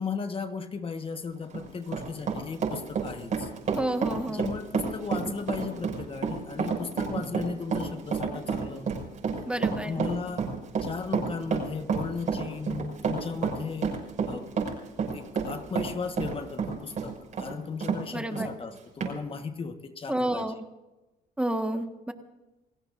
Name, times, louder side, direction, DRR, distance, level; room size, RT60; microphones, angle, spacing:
voice 1, 0.0-3.5 4.3-9.1 9.8-10.5 10.8-14.0 14.2-14.4 15.1-20.4, left 5 dB, 30° left, 7 dB, 1.4 m, -36 dB
Run, 1.4-18.0 18.4-18.5 19.0-19.1, right 5 dB, 50° right, 6.2 m, -30 dB
voice 2, 3.7-4.5 9.5-10.0 18.1-18.5 20.1-20.5 21.4-22.1, right 1 dB, 5° right, 6 dB, 1.5 m, -30 dB
29.5 x 17.0 x 2.6 m, 1.0 s
cardioid pair, 110°, 17 cm